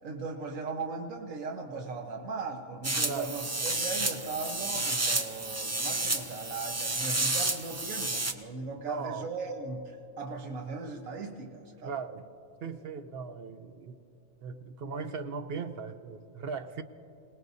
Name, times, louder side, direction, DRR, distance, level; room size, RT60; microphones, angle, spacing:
voice 1, 0.0-11.9, right 4 dB, 85° right, 1 dB, 1.5 m, -38 dB
sound 1, 2.8-8.3, right 2 dB, 25° right, 0.4 m, -31 dB
voice 2, 8.9-9.3 11.8-12.3 12.6-13.9 14.4-16.8, right 5 dB, 55° right, 9 dB, 0.8 m, -38 dB
26.0 x 18.5 x 2.7 m, 2.7 s
omnidirectional pair, 1.4 m